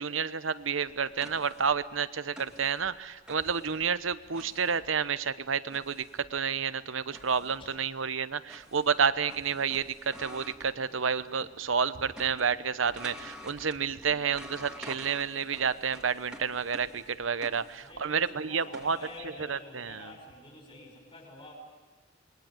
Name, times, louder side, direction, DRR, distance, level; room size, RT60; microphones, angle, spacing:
voice 1, 0.0-19.0 19.5-20.1, right 6 dB, 85° right, 14 dB, 0.9 m, -30 dB
sound 1, 0.9-11.6 11.8-19.3, equal, 5° right, 2.7 m, -50 dB
voice 2, 17.8-21.5, left 2 dB, 30° left, 0 dB, 6.5 m, -48 dB
27.5 x 21.5 x 9.2 m, 1.3 s
head